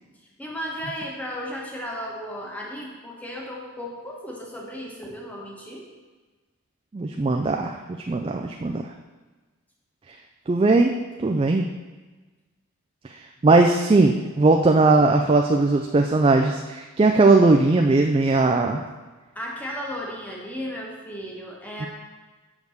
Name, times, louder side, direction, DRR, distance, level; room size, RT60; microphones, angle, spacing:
voice 1, 0.4-5.8 19.3-21.9, equal, 5° left, -2 dB, 1.2 m, -34 dB
voice 2, 6.9-7.8 8.1-8.8 10.5-10.9 11.2-11.7 13.1-18.8 21.8-21.9, right 3 dB, 25° right, 3 dB, 0.3 m, -19 dB
6.1 x 5.3 x 6.5 m, 1.3 s
head